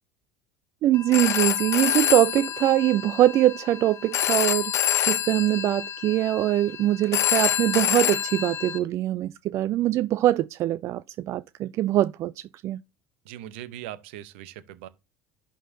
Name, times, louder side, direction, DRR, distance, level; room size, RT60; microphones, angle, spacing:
voice 1, 0.8-4.7 5.1-11.0 11.3-12.8, right 14 dB, 50° right, 0.3 m, -23 dB
Telephone, 0.9-8.8, left 11 dB, 45° left, 1.0 m, -27 dB
voice 2, 13.2-14.9, right 12 dB, 70° right, 0.8 m, -40 dB
11.0 x 3.7 x 2.7 m
hypercardioid pair, 70°, 7 cm